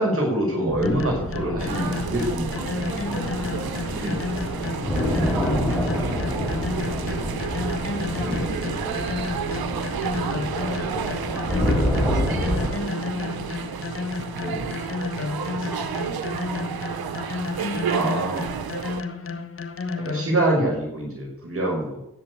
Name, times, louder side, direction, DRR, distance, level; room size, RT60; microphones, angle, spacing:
voice 1, 0.0-2.5 3.9-4.2 5.0-5.3 8.1-8.5 10.3-10.4 14.3-14.6 17.9-18.5 19.9-22.0, right 1 dB, 40° right, -2 dB, 6.0 m, -25 dB
sound 1, 0.7-12.7, equal, ahead, 4.5 m, -28 dB
sound 2, 0.8-20.5, left 4 dB, 40° left, 1.3 m, -32 dB
sound 3, 1.6-19.0, right 8 dB, 90° right, 1.1 m, -32 dB
voice 2, 1.7-2.2 2.6-7.8 8.3-9.9 10.2-13.8 14.4-17.3 17.5-19.5, right 2 dB, 75° right, -1 dB, 5.9 m, -39 dB
11.0 x 8.4 x 8.5 m, 0.78 s
cardioid pair, 65°, 35 cm